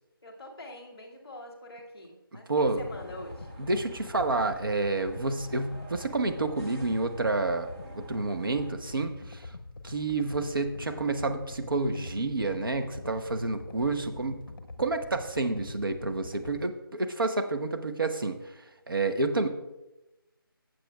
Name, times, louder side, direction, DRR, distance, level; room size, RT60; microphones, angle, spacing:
voice 1, 0.2-3.5, left 1 dB, 15° left, -1 dB, 1.4 m, -45 dB
voice 2, 2.5-2.8 3.6-9.4 9.8-14.4 14.8-18.4 18.9-19.5, right 3 dB, 65° right, 6 dB, 0.9 m, -29 dB
sound 1, 2.6-16.7, left 2 dB, 60° left, 0.7 m, -44 dB
sound 2, 2.9-8.7, right 1 dB, 20° right, 1.1 m, -51 dB
15.0 x 7.6 x 2.3 m, 1.0 s
figure-of-eight pair, 175°, 12 cm